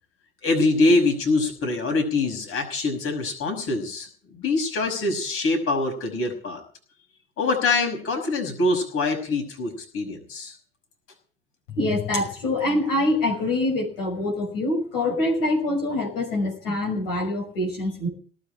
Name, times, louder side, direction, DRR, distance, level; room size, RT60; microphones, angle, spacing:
voice 1, 0.4-6.6 7.4-10.5, left 2 dB, 45° left, 3 dB, 5.8 m, -24 dB
voice 2, 11.8-18.1, left 1 dB, 65° left, -1 dB, 5.8 m, -25 dB
18.5 x 7.8 x 8.8 m, 0.43 s
figure-of-eight pair, 60°, 31 cm